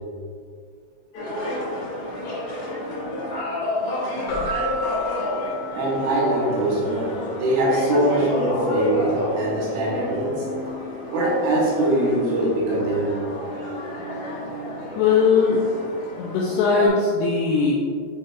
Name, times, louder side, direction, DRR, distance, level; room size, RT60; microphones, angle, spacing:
sound 1, 1.1-16.9, left 1 dB, 55° left, 2.4 m, -30 dB
Keyboard (musical), 4.3-6.7, right 1 dB, 75° left, 3.5 m, -32 dB
voice 1, 5.7-10.5 11.1-13.1, right 1 dB, 75° right, -4 dB, 2.9 m, -22 dB
voice 2, 15.0-15.6 16.2-17.7, left 5 dB, 90° left, -3 dB, 2.5 m, -19 dB
8.9 x 5.3 x 2.4 m, 2.1 s
omnidirectional pair, 5.5 m